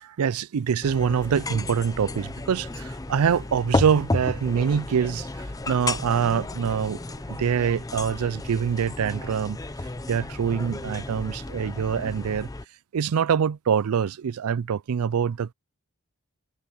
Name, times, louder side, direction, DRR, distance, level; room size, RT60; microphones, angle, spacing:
voice 1, 0.0-5.3 5.7-7.0 7.3-9.6 10.1-12.5 12.9-15.5, right 7 dB, 80° right, 0.4 m, -25 dB
sound 1, 0.8-12.6, left 2 dB, 15° left, 0.5 m, -33 dB
head